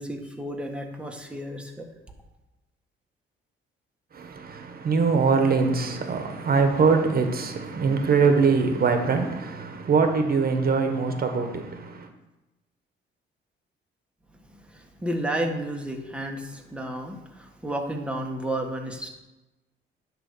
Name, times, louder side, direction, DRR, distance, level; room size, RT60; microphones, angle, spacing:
voice 1, 0.0-1.9 14.7-19.1, right 1 dB, 5° right, 1.4 m, -32 dB
voice 2, 4.1-12.1, right 4 dB, 50° right, 1.3 m, -23 dB
10.0 x 3.4 x 6.8 m
cardioid pair, 90°, 20 cm